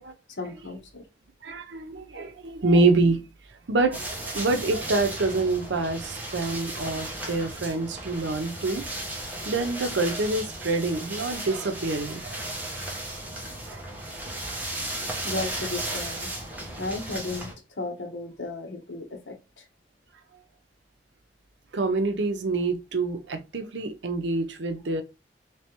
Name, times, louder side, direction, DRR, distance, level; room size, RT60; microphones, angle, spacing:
voice 1, 0.4-1.1 15.2-16.3 16.8-17.5 17.8-19.7, left 2 dB, 85° left, 1.1 m, -34 dB
voice 2, 1.4-3.2 3.7-8.9 9.5-12.4 13.7-13.8 21.7-25.0, right 3 dB, 80° right, 0.7 m, -26 dB
sound 1, 3.9-17.5, right 1 dB, 10° right, 0.9 m, -35 dB
3.3 x 3.3 x 2.9 m
head